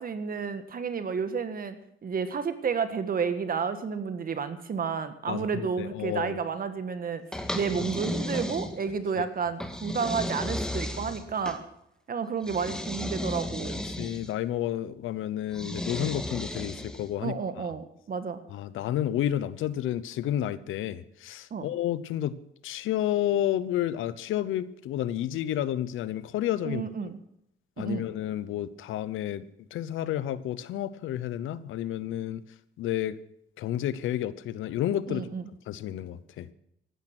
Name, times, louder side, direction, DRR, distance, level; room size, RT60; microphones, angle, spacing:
voice 1, 0.0-1.7 2.0-7.2 7.5-11.6 12.1-13.8 17.2-18.4 21.5-21.7 26.6-27.2 27.8-28.1 35.1-35.5, right 6 dB, 45° right, 10 dB, 1.5 m, -31 dB
voice 2, 5.3-6.4 13.9-17.3 18.5-22.3 22.6-26.9 27.8-29.4 29.7-32.4 32.8-33.2 33.6-35.3 35.7-36.5, left 12 dB, 85° left, 16 dB, 0.8 m, -30 dB
sound 1, 7.3-9.0 9.6-11.6 12.4-14.3 15.5-17.1, left 1 dB, 5° left, 1.9 m, -34 dB
15.0 x 12.5 x 6.1 m, 0.75 s
cardioid pair, 90°, 20 cm